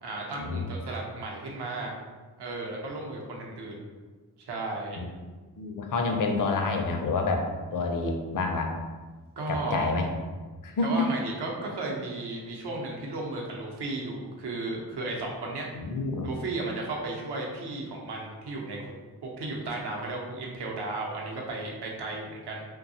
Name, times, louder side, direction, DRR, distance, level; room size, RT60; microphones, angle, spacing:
voice 1, 0.0-1.9 2.4-3.8 4.4-5.0 9.4-9.9 10.8-15.7 16.2-18.9 19.2-22.6, right 2 dB, 70° right, -1 dB, 0.7 m, -34 dB
voice 2, 5.6-7.5 7.7-8.7 9.5-10.0 10.6-11.1 15.7-16.3, left 3 dB, 50° left, 3 dB, 0.5 m, -28 dB
2.6 x 2.2 x 2.7 m, 1.3 s
cardioid pair, 45°, 42 cm